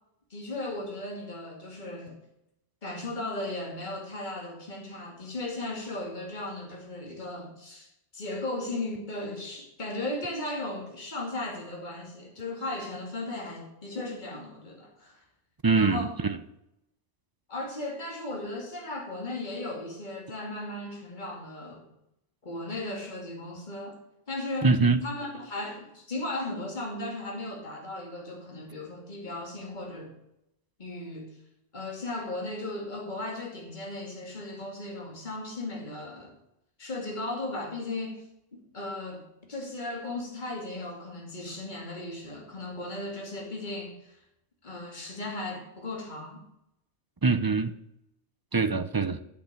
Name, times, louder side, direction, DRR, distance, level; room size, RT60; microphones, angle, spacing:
voice 1, 0.3-2.2 2.8-15.2 15.7-16.1 17.5-21.9 22.4-24.0 24.3-24.7 25.0-30.1 30.8-31.3 31.7-36.3 36.8-38.2 38.5-39.2 39.5-44.2 44.6-46.4, left 2 dB, 40° left, 2.7 m, -36 dB
voice 2, 15.6-16.4 24.6-25.0 47.2-47.7 48.5-49.2, right 4 dB, 30° right, 0.4 m, -23 dB
8.7 x 8.2 x 8.9 m
omnidirectional pair, 1.2 m